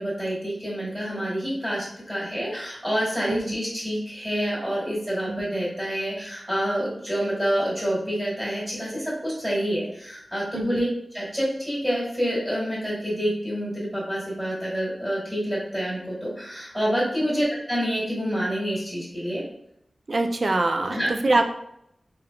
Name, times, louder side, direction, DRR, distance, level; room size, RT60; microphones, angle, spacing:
voice 1, 0.0-10.9 11.1-19.4 20.8-21.1, equal, ahead, -9 dB, 1.4 m, -27 dB
voice 2, 20.1-21.4, right 2 dB, 55° right, 5 dB, 0.3 m, -24 dB
3.4 x 2.3 x 2.2 m, 0.74 s
wide cardioid pair, 65°, 0 cm